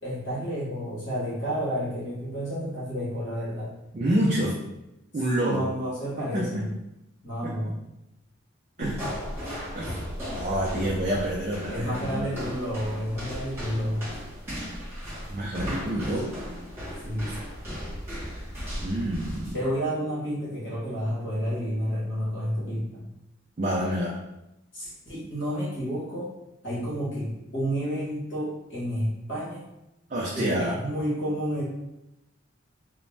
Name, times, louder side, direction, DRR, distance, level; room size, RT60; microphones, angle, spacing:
voice 1, 0.0-3.7 4.0-4.3 5.4-6.7 7.2-7.8 8.8-9.1 9.4-9.6 11.7-14.1 17.0-17.3 19.5-23.1 24.7-26.3 26.6-29.7 30.3-31.6, equal, 60° left, -8 dB, 1.1 m, -30 dB
voice 2, 3.9-4.5 5.1-5.7 6.2-6.6 7.4-7.5 8.8-9.0 9.7-10.0 10.4-12.3 15.3-16.3 18.8-19.6 23.6-24.2 30.1-30.8, right 1 dB, 35° right, -4 dB, 0.3 m, -28 dB
sound 1, 8.8-19.6, equal, 10° right, 1.1 m, -36 dB
2.5 x 2.0 x 3.2 m, 0.90 s
head